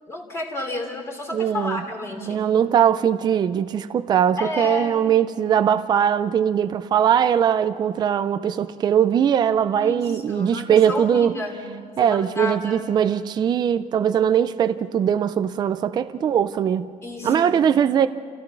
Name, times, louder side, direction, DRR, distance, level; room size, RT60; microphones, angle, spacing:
voice 1, 0.1-2.4 4.4-5.0 9.7-11.7 12.0-12.9 17.0-17.6, left 2 dB, 20° left, 3.1 m, -31 dB
voice 2, 1.3-1.8 2.3-11.3 12.0-16.9 17.2-18.1, right 8 dB, 30° right, 0.5 m, -20 dB
28.5 x 16.0 x 6.2 m
cardioid pair, 165°, 15 cm